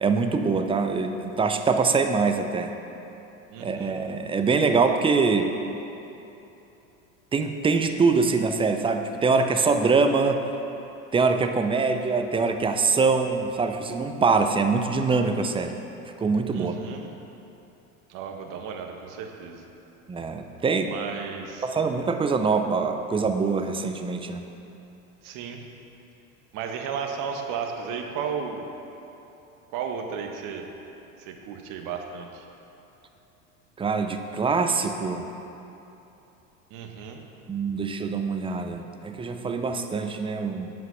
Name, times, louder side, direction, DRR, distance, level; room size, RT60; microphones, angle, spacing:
voice 1, 0.0-2.7 3.6-5.5 7.3-10.4 11.1-15.8 16.2-16.7 20.1-20.9 21.6-24.4 33.8-35.3 37.5-40.7, right 4 dB, 15° right, 6 dB, 0.5 m, -24 dB
voice 2, 3.5-4.0 16.5-17.0 18.1-19.6 20.9-21.7 25.2-25.6 26.5-28.7 29.7-30.7 31.2-32.4 36.7-37.2, right 6 dB, 50° right, 3 dB, 1.1 m, -34 dB
7.6 x 5.8 x 5.8 m, 3.0 s
hypercardioid pair, 80°, 40 cm